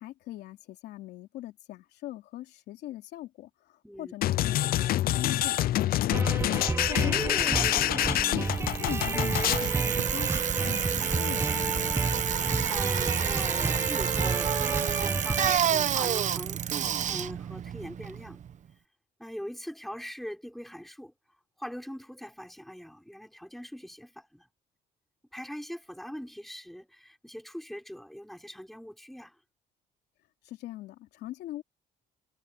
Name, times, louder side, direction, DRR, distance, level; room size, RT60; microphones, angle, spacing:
voice 1, 0.0-6.4 6.8-8.2 8.8-12.0 30.4-31.6, left 15 dB, 80° left, 3.2 m, -41 dB
sound 1, 4.2-9.7, left 14 dB, 60° left, 0.6 m, -27 dB
sound 2, 6.1-15.6, right 3 dB, 15° right, 0.9 m, -31 dB
voice 2, 6.6-7.0 12.2-14.5 15.0-18.4 19.2-24.5 25.3-29.4, equal, ahead, 3.6 m, -42 dB
Bicycle, 8.5-18.5, right 9 dB, 45° right, 1.0 m, -30 dB
cardioid pair, 110°, 17 cm